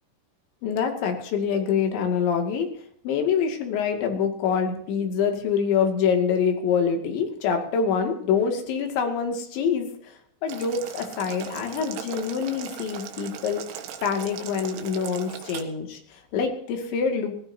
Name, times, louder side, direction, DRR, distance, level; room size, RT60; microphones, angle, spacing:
voice 1, 0.6-2.7 3.0-13.6 14.0-17.3, left 6 dB, 75° left, 4 dB, 4.6 m, -25 dB
Boiling, 10.5-15.6, right 9 dB, 90° right, 3.9 m, -39 dB
22.5 x 16.0 x 2.8 m, 0.66 s
omnidirectional pair, 5.3 m